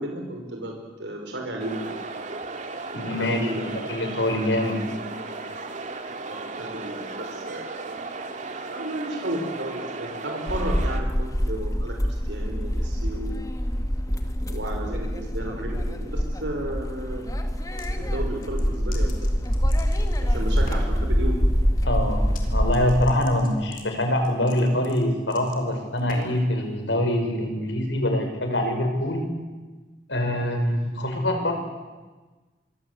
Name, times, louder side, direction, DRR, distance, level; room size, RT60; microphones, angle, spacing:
voice 1, 0.0-1.9 3.2-3.8 6.2-7.9 8.6-13.4 14.5-17.3 18.0-19.5 20.2-21.5, right 1 dB, 75° right, 1 dB, 5.4 m, -33 dB
sound 1, 1.6-11.0, right 3 dB, 45° right, 2.4 m, -35 dB
voice 2, 2.9-4.8 21.8-29.2 30.1-31.5, left 1 dB, 80° left, 5 dB, 5.8 m, -24 dB
sound 2, 10.5-23.1, equal, 20° left, 2.2 m, -25 dB
sound 3, 17.5-17.9 18.4-20.2 20.6-21.0 22.2-22.5 22.7-26.5, left 4 dB, 50° left, 4.3 m, -44 dB
25.0 x 25.0 x 8.3 m, 1.3 s
head